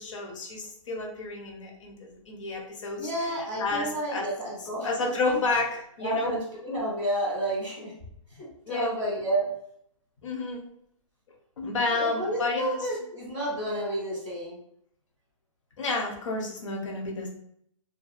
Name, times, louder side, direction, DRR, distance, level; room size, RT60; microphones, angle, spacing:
voice 1, 0.0-3.1 3.6-4.3 4.8-6.3 8.7-8.9 10.2-10.6 11.6-12.8 15.8-17.3, left 3 dB, 65° left, 0 dB, 0.7 m, -30 dB
voice 2, 3.0-5.1 6.0-7.9 8.4-9.5 11.9-14.6, right 1 dB, 10° left, -8 dB, 0.4 m, -30 dB
2.6 x 2.3 x 2.4 m, 0.70 s
hypercardioid pair, 160°, 17 cm